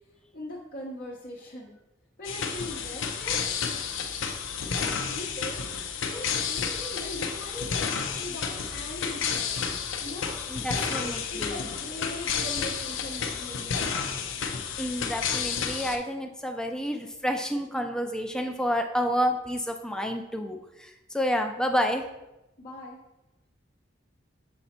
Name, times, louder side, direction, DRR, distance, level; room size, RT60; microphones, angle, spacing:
voice 1, 0.3-1.8 2.2-3.4 4.8-5.6 6.0-9.6 10.0-10.4 10.7-14.2 22.6-23.0, left 1 dB, 50° left, -3 dB, 0.8 m, -40 dB
sound 1, 2.2-16.0, left 6 dB, 85° left, 0.6 m, -31 dB
voice 2, 10.5-11.6 14.8-22.0, equal, 5° left, 4 dB, 0.5 m, -29 dB
6.8 x 4.1 x 4.3 m, 0.96 s
head